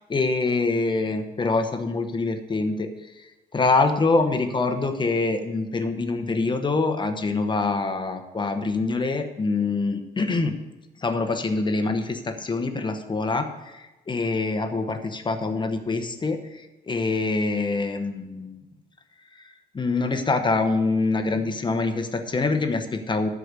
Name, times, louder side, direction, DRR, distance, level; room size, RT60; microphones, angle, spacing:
voice 1, 0.1-2.9 3.2-3.3 3.5-10.5 11.0-18.6 19.7-23.3, left 3 dB, 25° left, 7 dB, 1.0 m, -25 dB
13.0 x 5.0 x 8.2 m, 1.1 s
cardioid pair, 140°, 18 cm